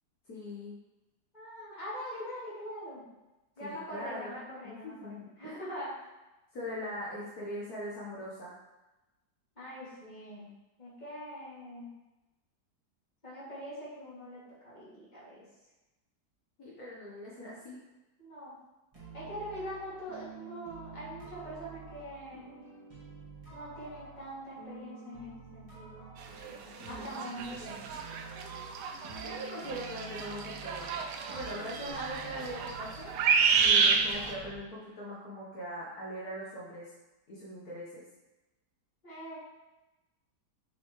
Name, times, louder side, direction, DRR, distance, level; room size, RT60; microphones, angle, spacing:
voice 1, 0.3-0.8 3.6-5.6 6.5-8.5 16.6-17.8 26.9-27.2 29.2-31.1 31.3-33.1 33.6-36.9 37.3-38.0, equal, 65° left, -6 dB, 1.7 m, -41 dB
voice 2, 1.3-3.1 3.6-6.1 9.6-10.5 10.8-11.9 13.2-15.4 18.2-18.6 19.1-22.6 23.5-26.0 26.4-27.8 39.0-39.4, equal, 25° left, -9 dB, 2.8 m, -43 dB
sound 1, 18.9-34.6, right 4 dB, 20° right, 2.2 m, -48 dB
sound 2, 26.4-26.5 26.9-34.3, right 5 dB, 80° right, 1.3 m, -29 dB
7.1 x 6.0 x 3.2 m, 1.0 s
omnidirectional pair, 1.8 m